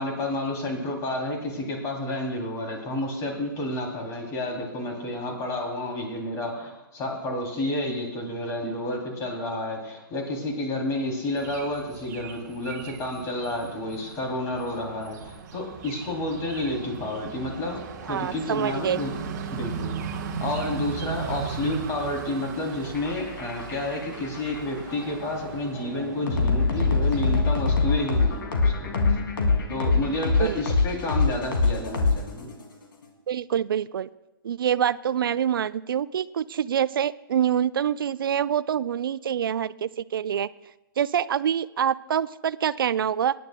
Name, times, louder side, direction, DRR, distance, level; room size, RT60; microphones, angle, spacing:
voice 1, 0.0-19.1 19.5-29.2 29.7-32.5, left 1 dB, 25° left, 1 dB, 2.8 m, -30 dB
sound 1, 11.4-28.4, right 6 dB, 50° right, 1.2 m, -38 dB
voice 2, 18.1-19.0 30.4-30.6 33.3-34.1 34.4-40.5 41.0-43.3, right 9 dB, 75° right, 17 dB, 0.4 m, -26 dB
sound 2, 22.8-32.6, left 3 dB, 75° left, 2.5 m, -24 dB
22.5 x 11.0 x 2.2 m, 1.0 s
hypercardioid pair, 135°, 12 cm